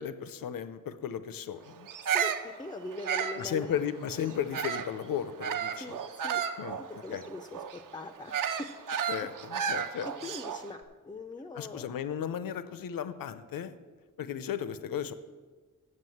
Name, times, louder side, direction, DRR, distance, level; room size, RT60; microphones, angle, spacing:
voice 1, 0.0-1.9 3.4-5.8 6.6-6.8 7.1-7.2 9.1-10.1 11.6-13.8 14.2-15.1, left 9 dB, 90° left, 13 dB, 0.6 m, -35 dB
Bird vocalization bird call bird song, 1.9-5.0 5.4-10.7, right 7 dB, 70° right, 0.6 m, -33 dB
voice 2, 2.0-3.8 5.7-6.4 6.8-8.7 9.2-9.3 9.6-9.7 10.0-11.9, left 2 dB, 15° left, 8 dB, 0.3 m, -42 dB
7.8 x 7.5 x 7.7 m, 1.4 s
wide cardioid pair, 180°, 34 cm